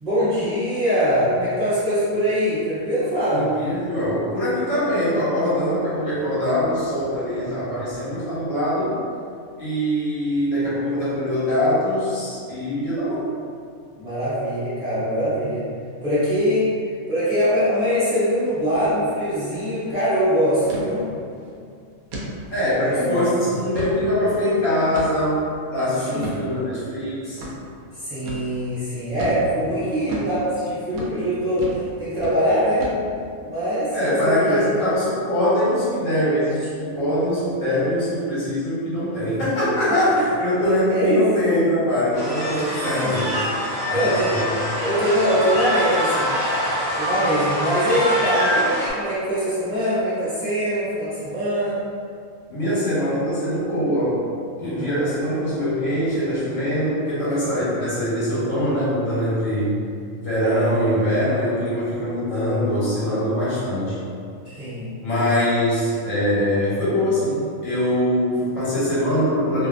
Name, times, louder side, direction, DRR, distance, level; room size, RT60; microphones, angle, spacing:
voice 1, 0.0-3.5 14.0-15.7 16.0-16.7 17.1-21.0 22.8-23.5 26.1-26.4 28.0-32.9 33.5-34.6 39.9-40.0 40.9-41.2 43.0-43.2 43.9-44.4 44.8-46.3 47.0-51.8 54.6-55.0 64.4-64.9, equal, 30° right, -15 dB, 1.0 m, -23 dB
voice 2, 3.3-8.9 9.6-13.3 22.5-25.4 25.7-27.4 33.9-43.5 43.9-44.5 52.5-54.2 54.6-59.7 60.2-64.0 65.0-69.7, equal, 70° left, -10 dB, 1.3 m, -23 dB
sound 1, 18.7-19.0 19.3-19.4 19.7-20.0 20.7-20.9 21.4-21.5 22.1-22.3 22.8-22.9 23.5-24.0 24.9-25.3 26.2-26.4 27.4-27.5 28.3-28.5 29.2-29.4 30.1-30.3 30.9-31.1 31.6-31.9 32.2-32.4 32.8-33.3, right 1 dB, 90° right, 1.0 m, -33 dB
sound 2, 42.1-48.9, equal, 30° left, 0.5 m, -24 dB
2.5 x 2.5 x 2.3 m, 2.3 s
omnidirectional pair, 1.4 m